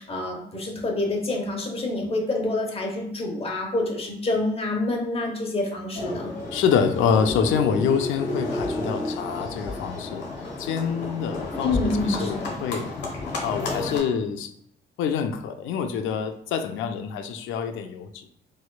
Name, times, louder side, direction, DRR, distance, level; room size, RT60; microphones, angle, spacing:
voice 1, 0.0-6.3 11.6-12.6, left 2 dB, 30° left, 1 dB, 0.9 m, -27 dB
Livestock farm animals working animals, 5.9-14.0, left 2 dB, 60° left, 1.1 m, -31 dB
voice 2, 6.5-10.3 10.6-12.9 13.4-14.5 15.0-18.2, left 7 dB, 80° left, 7 dB, 0.4 m, -26 dB
4.0 x 2.5 x 2.3 m, 0.73 s
cardioid pair, 90°, 20 cm